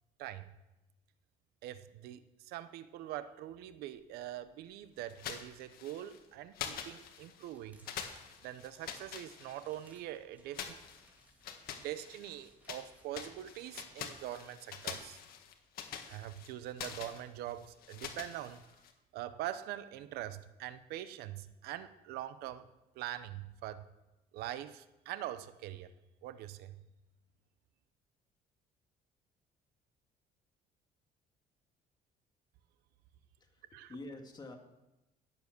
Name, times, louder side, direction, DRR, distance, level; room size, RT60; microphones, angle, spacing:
voice 1, 0.2-0.5 1.6-7.9 8.4-10.8 11.7-15.2 16.1-18.6 19.1-22.7 22.9-23.9 24.3-25.9 26.2-26.8 33.7-33.9, right 13 dB, 90° right, 13 dB, 0.8 m, -43 dB
sound 1, 5.1-6.2 6.5-7.5 7.9-9.9 10.5-12.9 13.1-18.9, left 8 dB, 70° left, 1.6 m, -45 dB
sound 2, 7.4-14.1, right 1 dB, 10° right, 2.9 m, -66 dB
voice 2, 33.4-34.6, left 2 dB, 25° left, 3 dB, 2.2 m, -47 dB
17.0 x 7.6 x 6.7 m, 0.98 s
cardioid pair, 125°, 16 cm